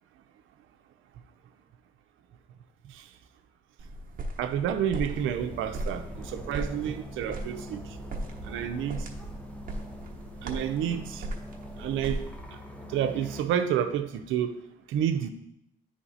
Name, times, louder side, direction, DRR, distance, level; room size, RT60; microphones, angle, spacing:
sound 1, 3.8-12.4, right 2 dB, 45° right, 1.1 m, -38 dB
voice 1, 4.4-7.8 8.4-9.0 10.4-11.3 11.8-12.2 12.9-14.6 14.9-15.3, right 9 dB, 85° right, 8 dB, 0.6 m, -29 dB
sound 2, 5.1-13.4, left 1 dB, 5° left, 0.8 m, -44 dB
9.4 x 3.2 x 4.0 m, 0.77 s
cardioid pair, 90°, 20 cm